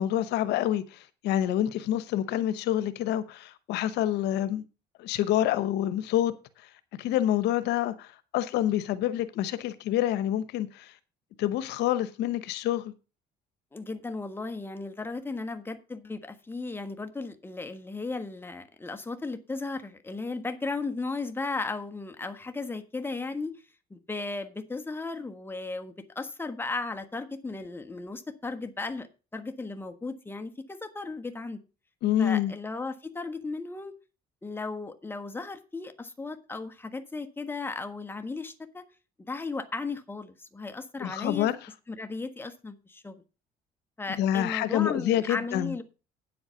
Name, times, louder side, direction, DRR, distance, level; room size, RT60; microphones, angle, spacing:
voice 1, 0.0-4.6 5.0-6.3 7.0-10.9 11.4-12.9 32.0-32.5 41.0-41.6 44.2-45.8, left 12 dB, 85° left, 0.9 m, -27 dB
voice 2, 13.7-23.6 23.9-29.1 29.3-31.6 32.2-33.9 34.4-38.8 39.3-41.5 41.9-43.2 44.0-45.8, left 3 dB, 15° left, 1.3 m, -35 dB
9.2 x 7.9 x 5.7 m
cardioid pair, 110°, 17 cm